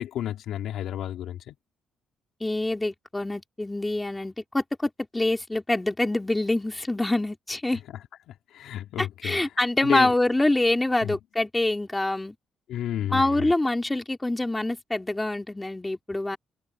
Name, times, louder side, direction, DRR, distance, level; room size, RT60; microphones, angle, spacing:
voice 1, 0.0-1.6 8.3-9.4 9.8-10.1 11.0-11.2 12.7-13.5, left 11 dB, 80° left, 3.7 m, -31 dB
voice 2, 2.4-7.8 9.0-12.4 13.1-16.4, left 2 dB, 15° left, 3.8 m, -25 dB
cardioid pair, 90°, 0 cm